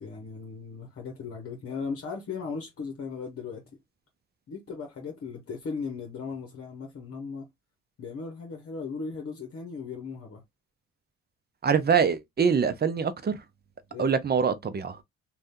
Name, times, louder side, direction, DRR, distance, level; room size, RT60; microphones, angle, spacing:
voice 1, 0.0-3.6 4.5-7.5 8.0-10.4 13.9-14.1, left 5 dB, 50° left, 0.9 m, -37 dB
voice 2, 11.6-13.4 14.0-15.0, right 6 dB, 35° right, 0.6 m, -24 dB
2.6 x 2.4 x 3.5 m
cardioid pair, 90°, 30 cm